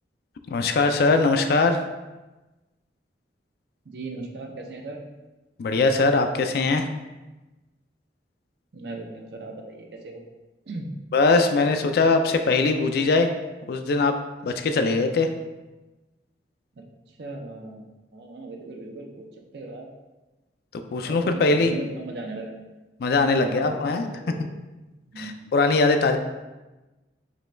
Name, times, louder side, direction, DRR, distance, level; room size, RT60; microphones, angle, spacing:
voice 1, 0.5-1.8 5.6-6.9 11.1-13.3 13.7-14.1 14.4-15.3 20.9-21.7 23.0-24.1 25.2-26.2, left 3 dB, 60° left, 7 dB, 0.3 m, -21 dB
voice 2, 3.9-5.0 8.7-10.2 10.7-10.9 16.8-16.9 17.2-19.3 19.5-19.9 21.1-22.6 23.4-24.5 25.1-25.5, right 2 dB, 65° right, 2 dB, 0.6 m, -38 dB
5.0 x 2.2 x 3.3 m, 1.1 s
head